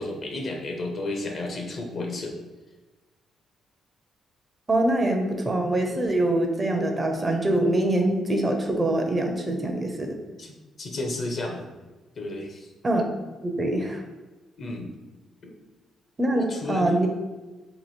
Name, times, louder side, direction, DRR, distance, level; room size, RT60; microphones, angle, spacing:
voice 1, 0.0-2.4 10.4-11.7 12.1-12.7 14.6-14.9 16.3-17.1, left 2 dB, 50° left, 2 dB, 0.7 m, -32 dB
voice 2, 4.7-10.2 12.8-13.0 13.4-14.0 16.2-17.1, right 1 dB, 25° right, 3 dB, 0.6 m, -24 dB
3.0 x 2.6 x 4.2 m, 1.2 s
cardioid pair, 90°, 0 cm